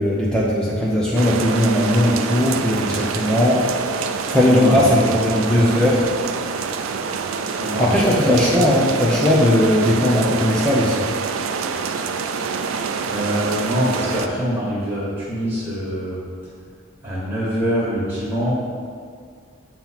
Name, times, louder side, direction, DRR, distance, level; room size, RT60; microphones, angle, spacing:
voice 1, 0.0-3.7 4.3-6.0 7.8-11.1, left 1 dB, 5° left, -6 dB, 0.6 m, -18 dB
sound 1, 1.2-14.3, right 5 dB, 85° right, 0.4 m, -26 dB
voice 2, 4.0-4.8 5.3-5.6 7.6-8.7 13.1-16.2 17.0-18.5, equal, 15° right, -9 dB, 1.5 m, -24 dB
7.2 x 3.0 x 5.6 m, 2.1 s
head